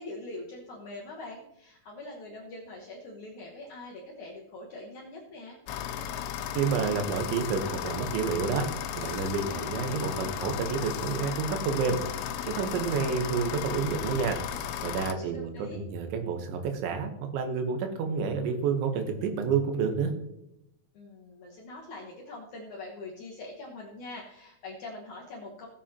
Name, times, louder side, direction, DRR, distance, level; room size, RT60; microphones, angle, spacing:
voice 1, 0.0-5.6 15.1-15.8 20.9-25.7, left 2 dB, 70° left, -2 dB, 1.8 m, -43 dB
sound 1, 5.7-15.1, left 9 dB, 90° left, 3.0 m, -35 dB
voice 2, 6.6-8.7 9.0-12.0 12.5-20.1, right 5 dB, 85° right, 5 dB, 3.5 m, -29 dB
17.0 x 7.7 x 2.9 m, 0.83 s
omnidirectional pair, 5.1 m